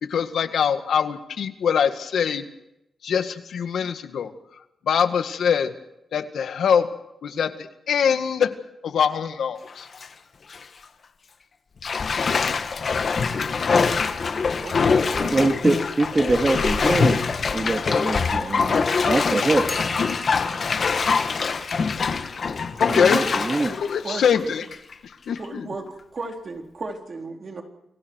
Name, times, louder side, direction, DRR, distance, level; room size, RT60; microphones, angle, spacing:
voice 1, 0.0-2.4 3.0-4.3 4.9-5.7 6.1-6.9 7.2-8.5 8.8-9.9 22.8-23.2 23.7-24.6 25.3-25.7, left 7 dB, 80° left, 8 dB, 1.9 m, -23 dB
Bathtub (filling or washing), 9.6-10.1 10.5-10.6 11.8-24.9 25.4-25.5, left 5 dB, 45° left, 1.8 m, -24 dB
voice 2, 14.5-15.3 24.0-24.5 25.4-25.9 26.1-27.6, right 3 dB, 40° right, 3 dB, 4.0 m, -35 dB
voice 3, 15.3-17.3 17.5-19.7 22.9-23.8, right 2 dB, 25° right, 5 dB, 2.3 m, -23 dB
sound 1, 19.7-23.6, left 1 dB, 15° left, 4.0 m, -42 dB
29.5 x 24.0 x 4.7 m, 0.85 s
wide cardioid pair, 140°, 0 cm